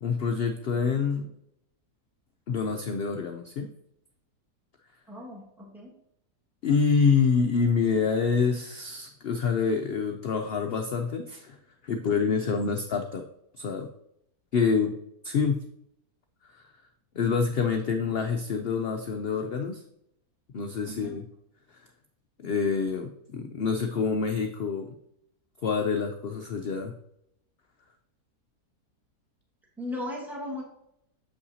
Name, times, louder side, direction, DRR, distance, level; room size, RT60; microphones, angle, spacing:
voice 1, 0.0-1.3 2.5-3.7 6.6-11.6 11.8-13.2 13.6-13.9 14.5-15.0 15.2-15.6 16.5-16.6 17.1-19.8 20.5-21.2 22.4-24.9 25.6-26.9, left 5 dB, 85° left, 4 dB, 0.5 m, -26 dB
voice 2, 5.1-5.9 12.6-12.7 20.9-21.2 29.8-30.6, left 1 dB, ahead, -3 dB, 1.4 m, -37 dB
7.7 x 5.5 x 2.7 m, 0.76 s
omnidirectional pair, 1.7 m